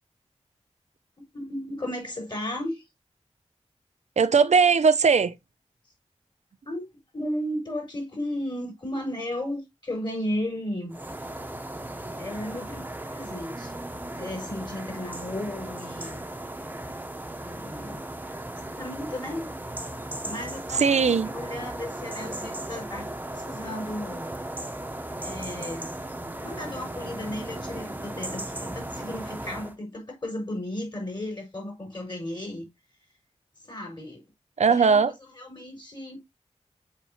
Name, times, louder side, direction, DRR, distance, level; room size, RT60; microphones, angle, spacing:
voice 1, 1.3-2.8 6.6-6.9 7.1-11.0 12.2-13.8 14.1-16.2 17.4-18.0 18.7-19.5 20.2-23.1 23.3-24.3 25.2-25.9 26.4-32.7 33.6-34.2 34.6-35.0 35.4-36.2, left 1 dB, 40° left, 5.1 m, -34 dB
voice 2, 4.2-5.4 20.7-21.3 34.6-35.1, right 5 dB, 70° right, 0.7 m, -19 dB
sound 1, 10.9-29.8, right 1 dB, 15° right, 0.9 m, -36 dB
7.1 x 5.2 x 2.9 m
wide cardioid pair, 60°, 12 cm